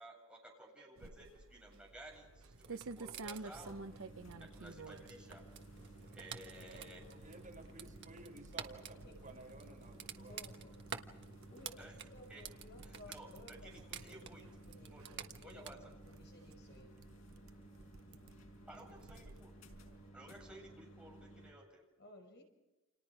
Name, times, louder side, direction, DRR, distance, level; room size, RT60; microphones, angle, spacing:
voice 1, 0.0-3.8 4.4-5.4 6.1-7.0 11.8-11.9 12.3-12.4 13.1-13.3 13.6-14.4 14.9-15.0 15.4-15.9 18.7-19.5 20.1-21.8, right 1 dB, 5° right, -1 dB, 7.7 m, -55 dB
sound 1, 1.0-20.1, right 3 dB, 80° right, 0.9 m, -54 dB
sound 2, 2.5-15.7, right 7 dB, 60° right, 1.4 m, -52 dB
sound 3, 3.5-21.5, right 1 dB, 90° left, 5.4 m, -57 dB
voice 2, 6.1-10.4, right 2 dB, 40° right, 1 dB, 5.8 m, -56 dB
voice 3, 10.1-10.8 11.5-17.0 20.4-20.8 22.0-22.4, left 1 dB, 55° left, 2 dB, 5.8 m, -59 dB
29.5 x 28.0 x 4.9 m, 1.1 s
head